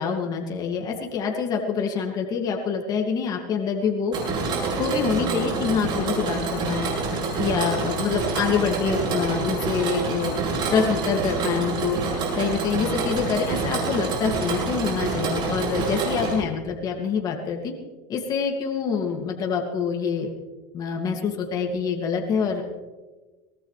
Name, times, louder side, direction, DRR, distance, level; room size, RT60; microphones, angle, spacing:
voice 1, 0.0-4.2 4.8-6.9 7.4-10.4 10.7-12.0 12.3-17.7 18.1-20.3 20.7-22.6, left 6 dB, 35° left, 1 dB, 2.4 m, -26 dB
Mechanisms, 4.1-16.3, right 4 dB, 45° right, 7.5 m, -27 dB
22.5 x 19.0 x 3.4 m, 1.3 s
supercardioid pair, 120°, 11 cm